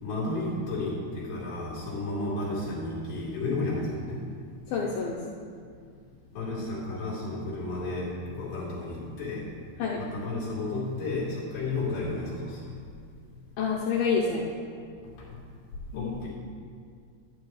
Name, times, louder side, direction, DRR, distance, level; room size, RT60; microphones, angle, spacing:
voice 1, 0.0-4.2 6.3-9.4 10.0-12.7 15.9-16.3, left 2 dB, 50° left, -8 dB, 4.0 m, -32 dB
voice 2, 4.7-5.2 9.8-10.0 13.6-14.5 15.9-16.3, left 5 dB, 90° left, -3 dB, 2.1 m, -28 dB
12.0 x 9.4 x 3.2 m, 2.2 s
omnidirectional pair, 5.1 m